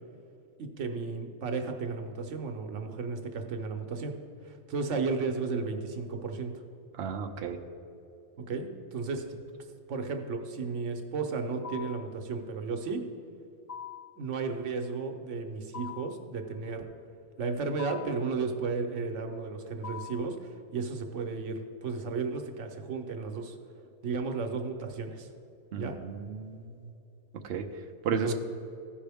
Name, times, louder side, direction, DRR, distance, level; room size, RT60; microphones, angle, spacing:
voice 1, 0.6-4.1 4.4-6.5 8.5-9.3 9.9-13.0 14.2-16.9 17.4-23.6 24.0-25.3 25.8-26.0 28.1-28.3, right 4 dB, 85° right, 5 dB, 1.1 m, -34 dB
voice 2, 6.9-7.6 25.7-26.9 27.4-27.6 28.0-28.3, right 6 dB, 65° right, 5 dB, 0.8 m, -33 dB
sound 1, 11.6-12.1 13.7-14.2 15.7-16.2 17.8-18.3 19.8-20.3, left 8 dB, 60° left, 1.0 m, -42 dB
14.5 x 5.4 x 3.5 m, 2.7 s
omnidirectional pair, 1.2 m